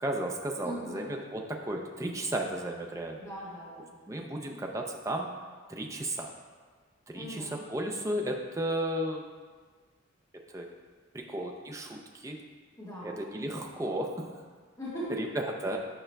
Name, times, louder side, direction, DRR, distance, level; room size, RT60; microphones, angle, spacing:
voice 1, 0.0-3.2 4.1-5.3 5.7-6.3 7.1-9.3 10.5-10.7 11.1-12.4 13.0-14.3 15.2-15.8, right 1 dB, 15° right, 1 dB, 0.5 m, -34 dB
voice 2, 0.6-1.0 3.2-4.2 7.1-7.5 12.8-13.2 14.8-15.2, equal, 15° left, -9 dB, 1.4 m, -40 dB
8.9 x 4.9 x 2.2 m, 1.5 s
head